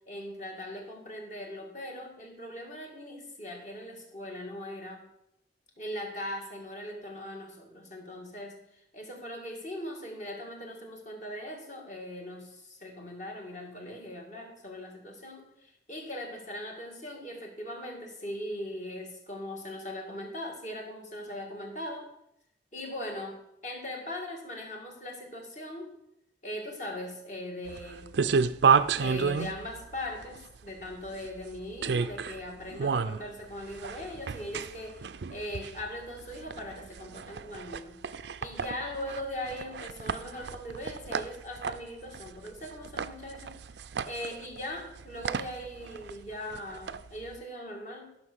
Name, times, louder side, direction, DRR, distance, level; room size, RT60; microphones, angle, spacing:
voice 1, 0.1-5.1 5.8-8.6 8.9-22.1 22.7-25.9 26.4-28.1 29.0-38.0 38.4-43.6 44.0-48.1, left 1 dB, 40° left, 0 dB, 2.2 m, -40 dB
sound 1, 27.7-47.4, right 6 dB, 70° right, 0.4 m, -32 dB
13.5 x 5.9 x 6.2 m, 0.82 s
head